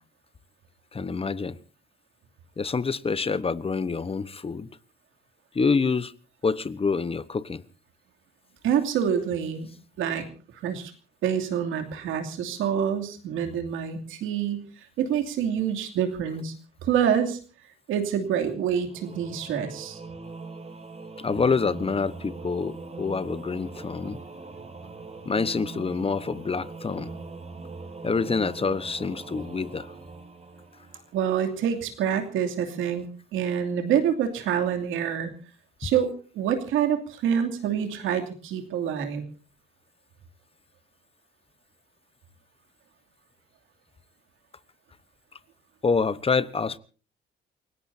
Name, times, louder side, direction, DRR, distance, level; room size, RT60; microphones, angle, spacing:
voice 1, 0.9-1.6 2.6-4.7 5.5-6.1 6.4-7.6 21.2-24.2 25.2-27.1 28.0-29.9 35.8-35.9 45.8-46.8, left 4 dB, 30° left, 1.1 m, -27 dB
voice 2, 8.6-9.7 10.0-10.3 10.6-10.9 11.2-14.7 15.0-16.5 16.8-17.4 17.9-20.0 31.1-33.1 33.3-35.3 35.8-39.2, right 8 dB, 90° right, 2.8 m, -26 dB
Singing / Musical instrument, 18.9-31.3, right 3 dB, 35° right, 4.4 m, -41 dB
29.0 x 17.5 x 2.8 m
cardioid pair, 90°, 20 cm